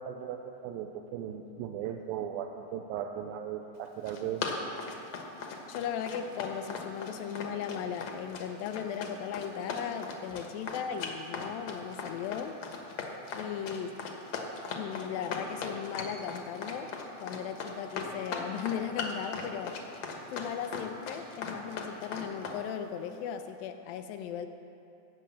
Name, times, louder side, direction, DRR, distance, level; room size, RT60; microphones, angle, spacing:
voice 1, 0.0-4.6, right 9 dB, 85° right, 4 dB, 2.4 m, -37 dB
Run, 3.8-22.6, left 5 dB, 60° left, 2.1 m, -38 dB
voice 2, 5.7-12.6 13.3-14.0 14.8-16.9 17.2-19.8 20.3-24.5, left 8 dB, 80° left, 7 dB, 2.3 m, -37 dB
16.0 x 6.8 x 8.5 m, 2.7 s
omnidirectional pair, 4.1 m